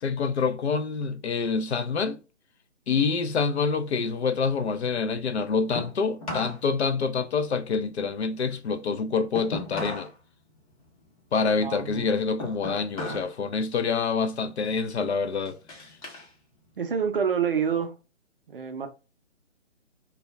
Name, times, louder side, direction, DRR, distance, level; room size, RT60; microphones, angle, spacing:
voice 1, 0.0-2.2 2.9-10.1 11.3-15.6, left 5 dB, 60° left, 0.5 m, -26 dB
sound 1, 3.7-6.6 6.9-10.2 10.5-13.4 13.7-14.1 14.7-16.3 16.7-17.8, left 2 dB, 30° left, 0.8 m, -38 dB
voice 2, 11.6-12.1 16.8-17.9 18.5-18.9, right 7 dB, 45° right, 0.5 m, -27 dB
2.2 x 2.1 x 3.4 m
figure-of-eight pair, 145°, 38 cm